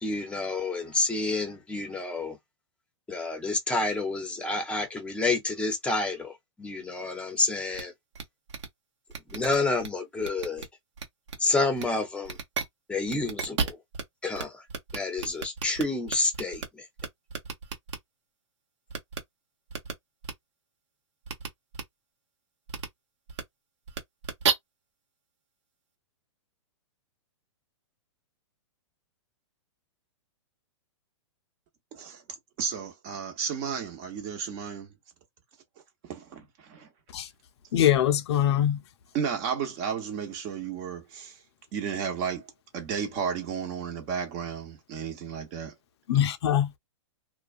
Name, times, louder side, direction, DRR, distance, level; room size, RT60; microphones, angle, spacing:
voice 1, 0.0-2.4 3.1-6.3 6.6-7.9 9.3-10.6 11.4-12.4 12.9-13.8 14.2-14.6 14.9-16.6, left 3 dB, 5° left, 0.7 m, -29 dB
sound 1, 7.7-7.8 8.1-8.2 8.5-8.7 9.1-9.9 10.2-10.6 11.0-11.3 11.8-11.9 12.2-12.6 13.1-14.0 14.3-14.4 14.7-16.6 17.0-18.0 18.9-19.2 19.7-19.9 20.2-20.3 21.2-21.5 21.7-21.8 22.7-22.9 23.3-23.4 23.9-24.5, right 6 dB, 65° right, 1.0 m, -32 dB
voice 2, 31.9-32.2 32.6-34.9 36.0-36.9 39.1-41.4 41.7-42.5 42.7-45.7, right 7 dB, 40° right, 1.0 m, -33 dB
voice 3, 37.7-38.8 46.1-46.7, left 10 dB, 60° left, 0.5 m, -23 dB
2.4 x 2.2 x 2.5 m
hypercardioid pair, 120°, 16 cm